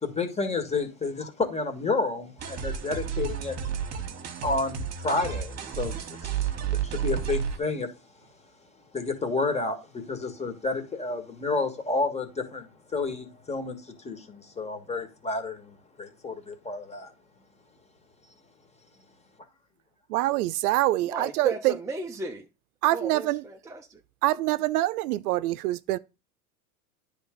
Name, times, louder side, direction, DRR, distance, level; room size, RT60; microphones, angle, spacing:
voice 1, 0.0-3.6 4.4-6.0 6.2-7.9 8.9-17.1, left 3 dB, 15° left, 1.5 m, -30 dB
sound 1, 2.4-7.6, right 8 dB, 35° right, 1.4 m, -31 dB
voice 2, 20.1-21.7 22.8-23.4 24.2-26.0, right 16 dB, 80° right, 0.6 m, -25 dB
voice 3, 21.0-22.5 22.9-24.0, right 3 dB, 10° right, 0.4 m, -35 dB
9.6 x 3.6 x 5.0 m
supercardioid pair, 120°, 45 cm